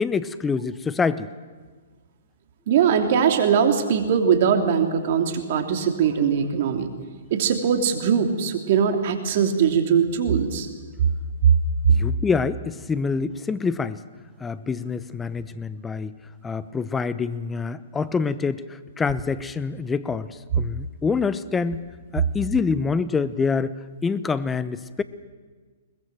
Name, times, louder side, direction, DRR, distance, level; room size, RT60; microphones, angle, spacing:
voice 1, 0.0-1.3 11.9-14.0 14.4-16.2 16.4-21.8 22.1-25.0, left 5 dB, 10° left, 15 dB, 0.9 m, -26 dB
voice 2, 2.7-6.9 7.3-10.7, right 7 dB, 55° right, 6 dB, 3.0 m, -21 dB
21.5 x 20.5 x 7.7 m, 1.5 s
hypercardioid pair, 125°, 0 cm